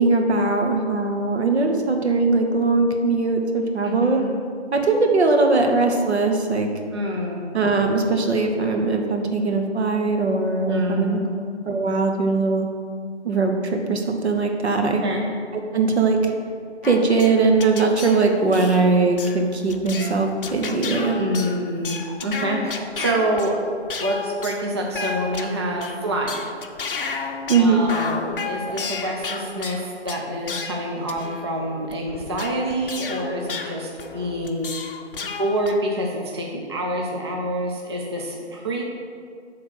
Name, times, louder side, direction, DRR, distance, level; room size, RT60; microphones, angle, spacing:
voice 1, 0.0-4.2 4.7-6.7 7.5-11.2 11.7-12.7 13.2-15.0 15.5-16.2 16.8-21.2 27.5-27.9, right 3 dB, 70° right, 3 dB, 1.2 m, -20 dB
voice 2, 3.8-4.3 6.9-7.4 10.7-11.3 14.8-15.2 21.1-23.6 24.0-26.4 27.6-34.7 35.4-38.8, right 1 dB, 25° right, -2 dB, 0.4 m, -27 dB
sound 1, 16.8-35.7, left 4 dB, 50° left, 0.6 m, -33 dB
7.9 x 3.6 x 6.5 m, 2.2 s
figure-of-eight pair, 145°, 35 cm